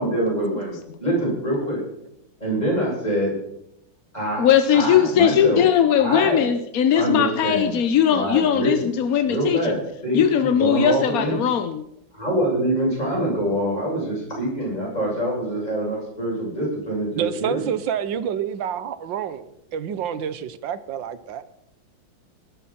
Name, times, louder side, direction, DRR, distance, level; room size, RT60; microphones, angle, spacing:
voice 1, 0.0-1.8 2.4-3.3 4.1-4.4 4.7-5.6 6.0-6.4 6.9-7.7 8.1-8.9 9.3-11.4 12.1-17.7, right 1 dB, 20° left, -4 dB, 7.5 m, -25 dB
voice 2, 4.4-9.8 10.1-11.8, left 9 dB, 60° left, 10 dB, 1.0 m, -19 dB
voice 3, 13.5-13.8 17.1-21.4, right 8 dB, 70° right, 13 dB, 1.6 m, -28 dB
19.5 x 12.5 x 4.3 m, 0.77 s
omnidirectional pair, 2.2 m